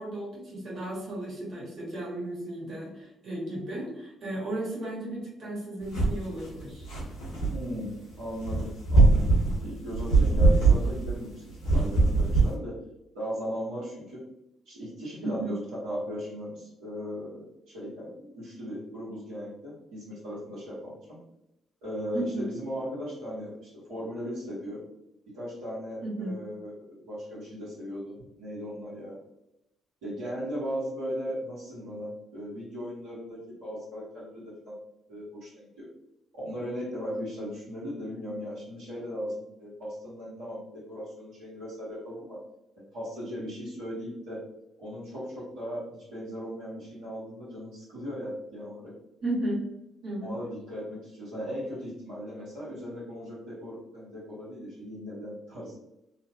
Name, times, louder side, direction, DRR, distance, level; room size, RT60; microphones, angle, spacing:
voice 1, 0.0-6.9 15.2-15.6 22.1-22.5 26.0-26.4 49.2-49.7 50.0-50.3, right 1 dB, 60° right, -5 dB, 1.3 m, -34 dB
sound 1, 5.9-6.2 6.6-7.6 8.4-11.3 11.6-12.5, right 3 dB, 90° left, 1.0 m, -21 dB
voice 2, 7.5-9.3 9.6-12.8 13.1-14.2 14.7-21.2 21.8-24.8 25.3-29.1 30.0-34.8 35.1-35.9 36.3-39.3 39.6-42.4 42.8-44.4 44.8-48.9 50.2-55.8, equal, 80° right, -10 dB, 1.0 m, -37 dB
3.0 x 2.1 x 2.8 m, 0.86 s
hypercardioid pair, 50°, 0 cm